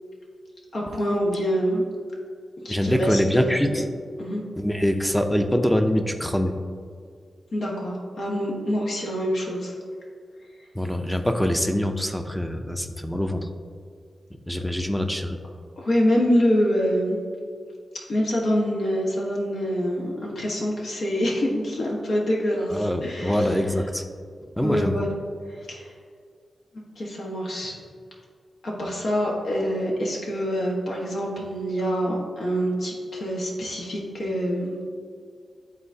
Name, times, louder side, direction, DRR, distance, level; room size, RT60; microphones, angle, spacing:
voice 1, 0.7-1.8 2.6-3.6 4.2-4.4 7.5-9.7 15.8-17.2 18.1-23.5 24.6-25.1 25.5-25.9 27.0-27.7 28.6-34.8, equal, 75° left, -2 dB, 1.3 m, -25 dB
voice 2, 2.7-3.8 4.6-6.5 10.7-13.5 14.5-15.4 22.7-24.0 24.6-24.9, equal, 5° left, 6 dB, 0.5 m, -24 dB
11.0 x 3.9 x 2.7 m, 2.1 s
cardioid pair, 80°, 0 cm